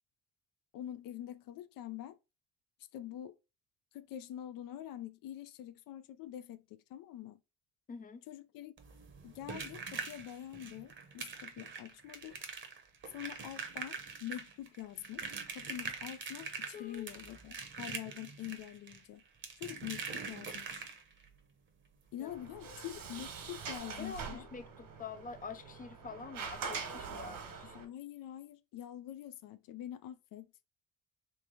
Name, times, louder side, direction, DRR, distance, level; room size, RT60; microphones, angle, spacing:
voice 1, 0.7-2.2 2.9-3.4 3.9-7.4 8.3-8.7 9.2-12.4 13.1-19.2 19.6-20.8 22.1-24.5 27.6-30.6, left 12 dB, 70° left, 0.6 m, -45 dB
voice 2, 7.9-8.2 16.7-17.1 22.2-22.3 24.0-27.8, left 5 dB, 25° left, 0.4 m, -46 dB
sound 1, 8.8-21.3 22.7-22.8 23.1-23.3 23.7-23.8, right 5 dB, 35° right, 0.8 m, -44 dB
Sliding door, 22.3-27.8, right 5 dB, 70° right, 1.4 m, -44 dB
3.4 x 3.3 x 3.7 m
cardioid pair, 130°, 35 cm